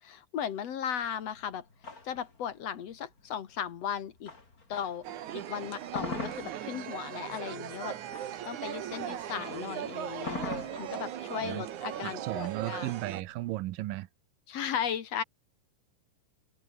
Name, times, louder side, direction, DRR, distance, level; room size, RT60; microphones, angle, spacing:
voice 1, 0.0-1.7 2.0-4.3 4.7-5.1 5.3-8.0 8.4-12.9 14.5-15.2, left 8 dB, 55° left, 2.3 m, -36 dB
sound 1, 1.0-5.2 5.6-13.5, left 3 dB, 25° left, 3.8 m, -43 dB
sound 2, 5.0-13.2, right 11 dB, 65° right, 2.8 m, -39 dB
voice 2, 12.0-14.1, right 17 dB, 90° right, 2.6 m, -35 dB
omnidirectional pair, 3.8 m